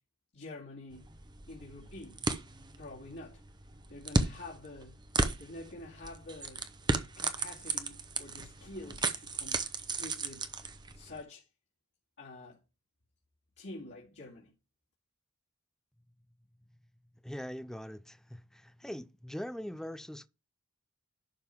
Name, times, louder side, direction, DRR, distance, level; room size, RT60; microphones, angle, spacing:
voice 1, 0.3-1.1 1.5-2.2 2.8-3.4 3.9-5.0 5.4-6.7 7.2-9.6 9.9-10.5 10.9-11.5 12.2-12.6 13.6-14.5, left 2 dB, 55° left, 2.3 m, -47 dB
sound 1, 0.9-11.2, right 3 dB, 20° right, 0.8 m, -36 dB
voice 2, 17.2-20.3, equal, ahead, 0.4 m, -42 dB
11.5 x 3.8 x 5.9 m
head